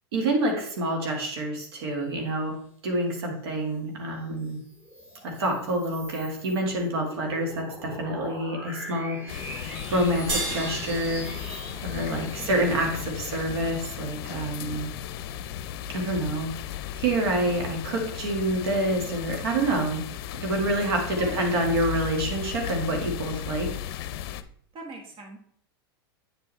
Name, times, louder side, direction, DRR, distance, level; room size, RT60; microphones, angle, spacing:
voice 1, 0.1-2.6 2.8-4.6 5.2-9.5 9.9-11.2 11.8-14.9 15.9-16.5 17.0-20.0 20.4-23.7, right 1 dB, 75° right, 2 dB, 1.9 m, -27 dB
sound 1, 4.2-15.1, equal, 15° right, 2.7 m, -43 dB
sound 2, 9.3-24.4, left 9 dB, 65° left, 0.6 m, -36 dB
sound 3, 10.3-12.9, right 2 dB, 60° right, 2.8 m, -34 dB
voice 2, 11.9-12.5 21.2-21.4 24.7-25.4, right 3 dB, 40° right, 3 dB, 1.7 m, -41 dB
8.7 x 5.4 x 3.3 m, 0.63 s
hypercardioid pair, 105°, 13 cm